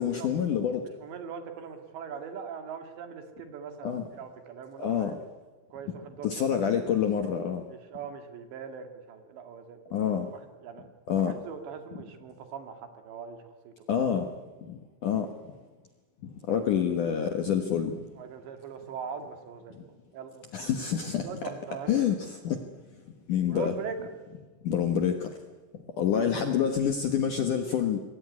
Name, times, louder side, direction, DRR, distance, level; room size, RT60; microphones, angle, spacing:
voice 1, 0.0-0.8 3.8-4.1 4.8-5.1 6.2-7.6 9.9-10.3 11.1-11.3 13.9-14.3 14.7-15.3 16.5-18.0 20.5-21.3 21.9-22.6 23.3-23.8 24.6-25.3 26.0-28.0, left 8 dB, 65° left, 6 dB, 2.1 m, -27 dB
voice 2, 1.0-5.2 5.7-6.5 7.7-10.0 10.3-10.9 11.2-13.4 13.6-13.7 18.2-19.8 20.1-20.5 21.2-22.1 23.5-24.0, right 6 dB, 70° right, 6 dB, 4.5 m, -41 dB
27.0 x 21.5 x 9.6 m, 1.3 s
omnidirectional pair, 5.4 m